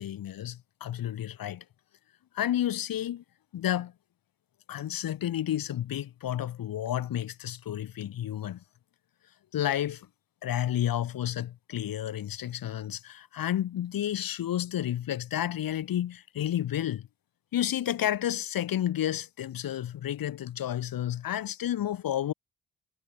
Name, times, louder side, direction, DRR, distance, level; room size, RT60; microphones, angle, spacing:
voice 1, 0.0-1.6 2.3-3.2 3.5-3.9 4.7-8.6 9.5-10.1 10.4-17.1 17.5-22.3, left 11 dB, 75° left, 2.7 m, -31 dB
hypercardioid pair, 40°, 35 cm